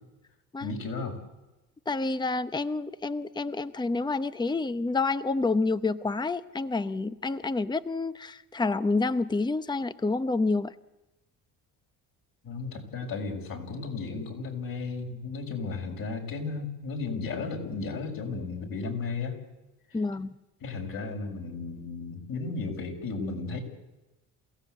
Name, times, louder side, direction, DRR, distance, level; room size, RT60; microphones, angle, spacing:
voice 1, 0.6-1.2 12.4-19.4 19.9-20.0 20.6-23.6, left 4 dB, 60° left, 2 dB, 6.8 m, -34 dB
voice 2, 1.9-10.7 19.9-20.3, left 3 dB, 10° left, 12 dB, 0.8 m, -28 dB
28.0 x 16.5 x 8.2 m, 1.0 s
supercardioid pair, 85°, 39 cm